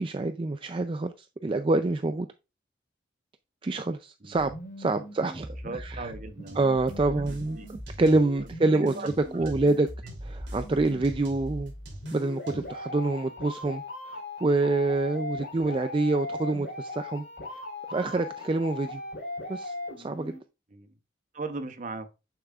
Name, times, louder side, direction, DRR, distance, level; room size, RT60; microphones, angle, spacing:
voice 1, 0.0-2.3 3.6-6.1 6.6-9.9 10.2-11.7 12.1-13.8 14.1-17.2 17.5-17.6 17.9-19.0 19.5-20.4, right 2 dB, 30° right, 0.4 m, -27 dB
voice 2, 4.2-4.5 4.9-5.0 5.5-6.7 7.2-7.7 8.8-9.1 9.4-9.5 20.7-20.9 21.3-22.1, right 3 dB, 45° right, 0.8 m, -38 dB
sound 1, 4.4-20.4, left 2 dB, 60° left, 3.8 m, -39 dB
sound 2, 6.5-8.5 8.9-12.9, right 1 dB, 85° right, 2.9 m, -44 dB
8.9 x 7.1 x 2.4 m
head